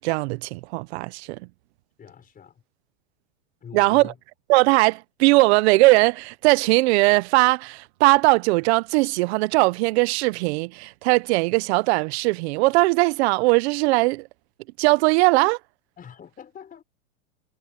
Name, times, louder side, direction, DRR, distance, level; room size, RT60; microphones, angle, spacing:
voice 1, 0.0-1.4 3.7-4.1 4.5-14.3 14.8-15.6, right 23 dB, 50° right, 1.0 m, -20 dB
voice 2, 2.0-2.6 3.6-4.2 16.0-16.8, left 7 dB, 20° left, 5.4 m, -43 dB
hypercardioid pair, 130°, 41 cm